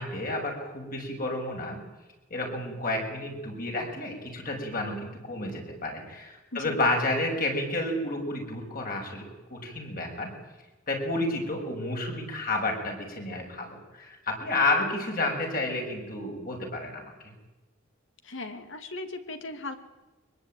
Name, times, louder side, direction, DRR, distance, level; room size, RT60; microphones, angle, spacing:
voice 1, 0.0-1.8 2.3-9.2 9.5-10.3 10.9-17.1, left 2 dB, 45° left, 2 dB, 6.3 m, -30 dB
voice 2, 18.2-19.8, left 2 dB, 75° left, 8 dB, 2.5 m, -37 dB
23.5 x 21.5 x 9.1 m, 1.1 s
head